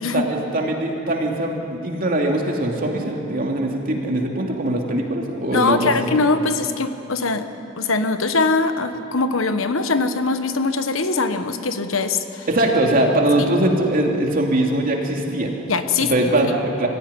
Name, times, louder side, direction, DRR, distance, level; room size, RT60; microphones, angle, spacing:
voice 1, 0.1-6.2 12.5-15.5 16.0-16.9, right 1 dB, 45° right, 0 dB, 2.9 m, -21 dB
voice 2, 5.5-7.5 7.8-12.5 15.7-16.1, left 3 dB, 85° left, 9 dB, 1.3 m, -21 dB
25.5 x 15.0 x 9.9 m, 2.8 s
head